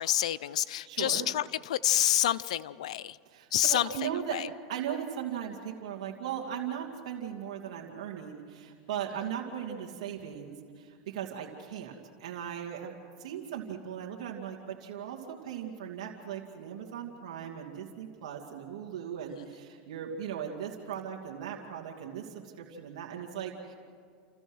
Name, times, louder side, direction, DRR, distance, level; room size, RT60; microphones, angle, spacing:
voice 1, 0.0-3.2 3.5-4.5, left 12 dB, 85° left, 16 dB, 0.5 m, -28 dB
voice 2, 0.9-1.3 3.3-4.4 4.7-11.9 12.2-12.9 13.2-22.3 22.6-23.7, right 9 dB, 75° right, -1 dB, 2.6 m, -38 dB
29.5 x 14.5 x 6.3 m, 2.1 s
supercardioid pair, 120°, 3 cm